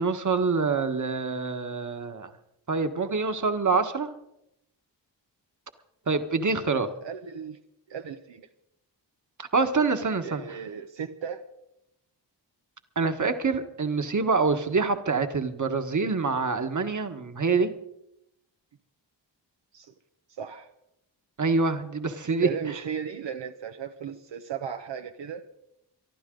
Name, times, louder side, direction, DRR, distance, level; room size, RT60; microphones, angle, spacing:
voice 1, 0.0-2.3 2.7-4.1 6.1-6.9 9.4-10.4 12.9-17.7 21.4-22.5, right 4 dB, 40° right, 7 dB, 1.6 m, -26 dB
voice 2, 7.0-7.6 7.9-8.5 10.2-11.5 19.7-19.9 20.4-20.7 22.4-25.4, right 7 dB, 75° right, 5 dB, 1.0 m, -36 dB
25.0 x 11.5 x 3.9 m, 0.82 s
cardioid pair, 55°, 44 cm